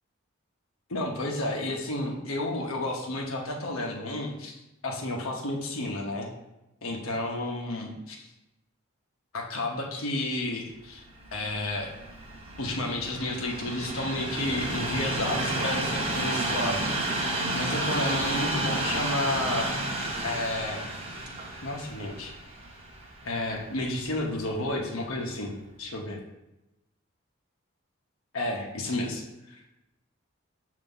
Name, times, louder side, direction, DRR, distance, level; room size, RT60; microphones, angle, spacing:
voice 1, 0.9-6.3 6.8-8.3 9.3-11.0 11.3-11.9 12.6-17.2 17.5-19.7 20.2-20.9 21.6-22.3 23.2-26.2 28.3-29.2, left 1 dB, 75° left, 0 dB, 0.9 m, -31 dB
Train, 11.1-24.3 25.0-25.1, right 1 dB, 25° right, 0.8 m, -31 dB
6.7 x 2.8 x 5.4 m, 0.95 s
head